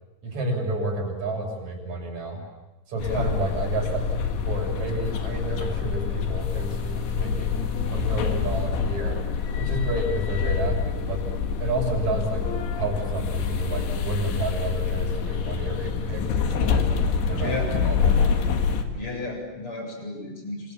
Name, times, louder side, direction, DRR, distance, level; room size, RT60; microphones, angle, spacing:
voice 1, 0.2-2.4 2.9-4.0 4.3-7.6 7.9-9.2 9.6-11.2 11.6-16.9 17.3-18.3, right 2 dB, 35° right, 1 dB, 7.9 m, -30 dB
voice 2, 2.9-3.3 17.3-17.7 18.9-20.7, left 2 dB, 25° left, 2 dB, 8.2 m, -33 dB
sound 1, 3.0-18.8, left 6 dB, 65° left, 3.8 m, -26 dB
28.0 x 27.5 x 7.4 m, 1.1 s
omnidirectional pair, 5.9 m